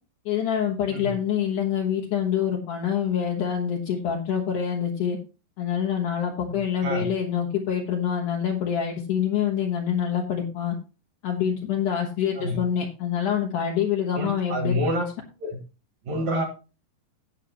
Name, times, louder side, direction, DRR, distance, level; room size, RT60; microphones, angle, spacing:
voice 1, 0.3-5.2 5.6-10.8 11.2-14.8, left 8 dB, 75° left, 0 dB, 1.8 m, -26 dB
voice 2, 14.1-15.0 15.4-15.6 16.1-16.4, equal, 55° right, 2 dB, 2.2 m, -27 dB
17.5 x 6.5 x 3.0 m, 0.32 s
omnidirectional pair, 5.4 m